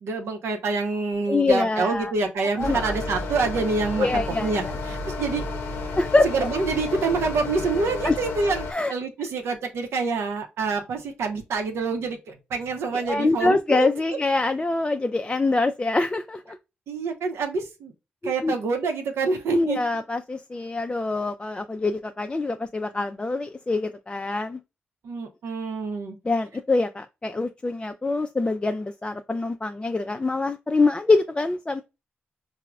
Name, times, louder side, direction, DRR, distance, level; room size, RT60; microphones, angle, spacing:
voice 1, 0.0-5.4 6.2-14.2 16.9-17.9 18.2-19.8 25.0-26.2, right 4 dB, 80° right, 0.6 m, -27 dB
voice 2, 1.3-2.1 2.6-2.9 4.0-4.7 6.0-6.5 8.0-8.2 8.7-8.9 12.9-16.6 18.2-18.5 19.5-24.6 26.2-31.8, left 3 dB, 25° left, 0.3 m, -24 dB
sound 1, 2.6-8.7, left 3 dB, 90° left, 0.5 m, -31 dB
4.6 x 2.0 x 2.2 m
supercardioid pair, 45°, 4 cm